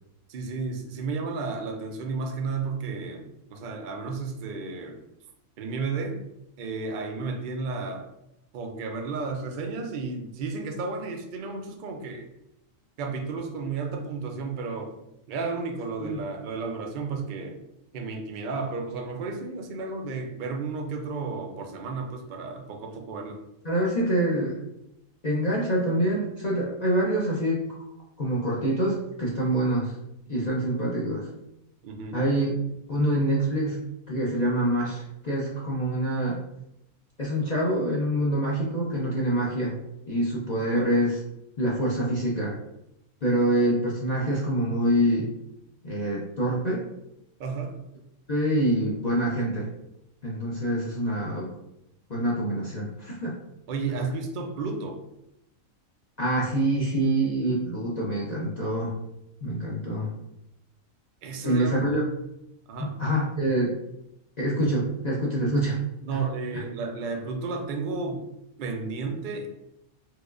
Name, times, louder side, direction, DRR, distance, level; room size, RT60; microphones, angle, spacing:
voice 1, 0.3-5.0 5.6-6.2 6.6-8.1 8.5-12.3 13.0-15.0 15.3-17.6 17.9-23.4 31.8-32.1 47.4-47.8 53.7-55.0 61.2-61.7 62.7-63.0 66.0-68.3 68.6-69.5, right 4 dB, 80° right, 3 dB, 0.4 m, -32 dB
voice 2, 23.6-24.6 25.2-27.7 28.2-29.9 30.3-31.3 32.1-32.5 32.9-33.8 34.1-36.4 37.2-39.7 40.1-41.2 41.6-42.6 43.2-45.3 45.8-46.8 48.3-49.7 50.2-51.5 52.1-53.3 56.2-58.9 59.4-60.1 61.4-62.1 62.8-63.7 64.4-65.8 66.1-66.2, right 1 dB, 50° left, -5 dB, 0.5 m, -26 dB
4.4 x 2.3 x 2.4 m, 0.82 s
omnidirectional pair, 1.4 m